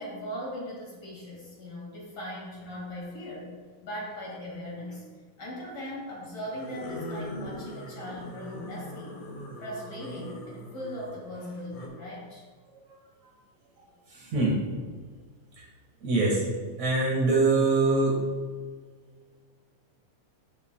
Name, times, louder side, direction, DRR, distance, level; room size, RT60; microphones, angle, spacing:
voice 1, 0.0-3.5 3.8-5.0 5.4-9.2 9.6-12.4, equal, 35° left, -4 dB, 2.1 m, -39 dB
sound 1, 2.6-2.9 4.5-5.0 6.4-11.9, left 1 dB, 90° left, 3.1 m, -41 dB
voice 2, 16.0-16.4 16.8-18.2, right 3 dB, 55° right, -3 dB, 2.7 m, -23 dB
13.5 x 6.9 x 2.3 m, 1.5 s
omnidirectional pair, 4.0 m